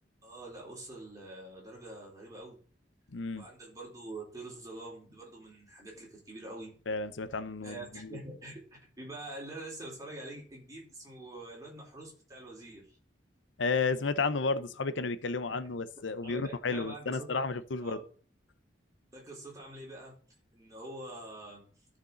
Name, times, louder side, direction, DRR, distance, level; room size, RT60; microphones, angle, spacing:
voice 1, 0.2-2.6 3.4-6.7 7.6-8.5 9.0-13.0 15.5-15.7 16.2-17.3 17.8-18.0 19.1-20.2 20.5-21.7, right 2 dB, 20° right, 3.9 m, -45 dB
voice 2, 3.1-3.5 6.9-8.2 13.6-18.0, left 4 dB, 80° left, 0.7 m, -32 dB
13.0 x 5.2 x 3.9 m
head